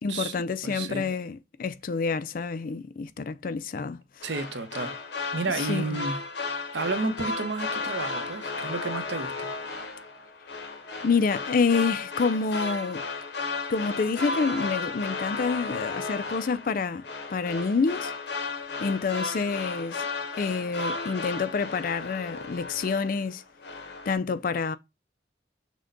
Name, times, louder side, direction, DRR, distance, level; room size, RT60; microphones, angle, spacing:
voice 1, 0.0-4.0 5.7-6.0 11.0-13.0 13.7-18.1 18.8-20.1 20.4-23.4 24.1-24.8, left 4 dB, 50° left, 0.4 m, -28 dB
voice 2, 0.6-1.1 4.2-4.9 5.3-6.2 6.7-9.5, right 3 dB, 90° right, 0.8 m, -31 dB
sound 1, 4.2-23.3 23.6-24.1, left 3 dB, 70° left, 0.9 m, -34 dB
6.2 x 2.2 x 3.8 m
head